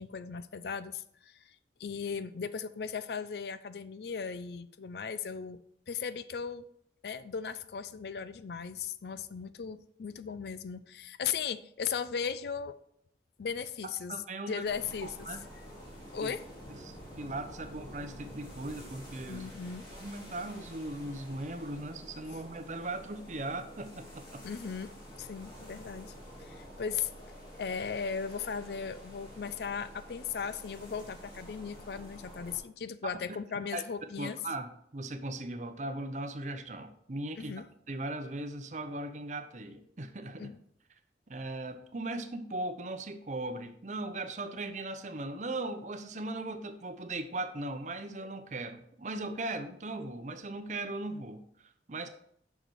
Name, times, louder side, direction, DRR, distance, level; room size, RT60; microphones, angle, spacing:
voice 1, 0.0-1.5 1.8-5.6 5.9-6.6 7.0-12.8 13.4-14.1 14.5-15.4 16.1-16.4 19.3-19.8 22.3-22.4 24.4-24.9 25.2-26.1 26.4-27.1 27.6-34.4 37.4-37.7 40.4-40.6, left 6 dB, 65° left, 14 dB, 0.4 m, -37 dB
voice 2, 14.1-14.6 15.0-15.4 16.2-16.3 16.8-19.4 19.9-24.4 33.0-33.1 33.7-33.8 34.2-37.5 37.9-40.5 41.3-52.1, right 2 dB, 45° right, 8 dB, 0.7 m, -38 dB
sound 1, 14.6-32.6, equal, 25° left, 3.1 m, -49 dB
6.6 x 6.0 x 4.7 m, 0.69 s
head